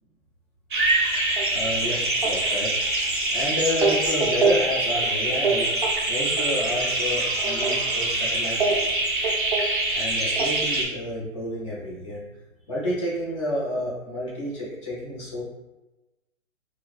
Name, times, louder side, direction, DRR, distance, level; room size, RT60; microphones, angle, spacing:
sound 1, 0.7-10.8, right 2 dB, 40° right, 0.5 m, -24 dB
voice 1, 1.5-5.7 6.1-8.9 9.9-12.2 12.7-15.4, left 1 dB, 20° left, -7 dB, 0.9 m, -30 dB
4.5 x 2.2 x 2.4 m, 1.0 s
hypercardioid pair, 165°, 40 cm